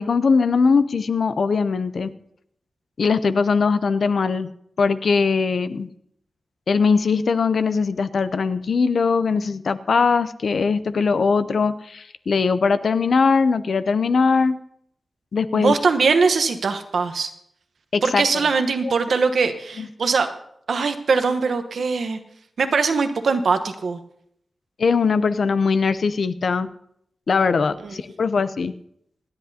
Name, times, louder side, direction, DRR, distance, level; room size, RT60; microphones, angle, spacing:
voice 1, 0.0-2.1 3.0-4.5 4.8-5.9 6.7-14.6 15.3-15.8 17.9-18.2 18.8-18.9 19.8-19.9 24.8-26.7 27.3-28.7, left 5 dB, 60° left, 13 dB, 0.5 m, -20 dB
voice 2, 15.5-17.3 18.0-20.3 20.7-22.2 22.6-24.0 27.8-27.9, right 4 dB, 70° right, 8 dB, 1.0 m, -21 dB
27.0 x 10.5 x 2.8 m, 0.73 s
wide cardioid pair, 170°, 0 cm